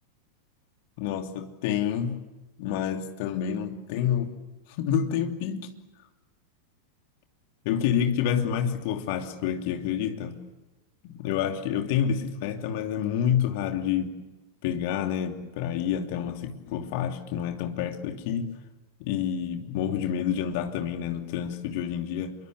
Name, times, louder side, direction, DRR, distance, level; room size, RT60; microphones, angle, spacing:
voice 1, 1.0-2.2 2.6-4.3 4.8-5.7 7.6-10.3 11.0-14.1 14.6-18.5 19.0-22.3, left 9 dB, 50° left, 5 dB, 3.0 m, -28 dB
27.5 x 23.0 x 8.2 m, 1.1 s
figure-of-eight pair, 90°, 0 cm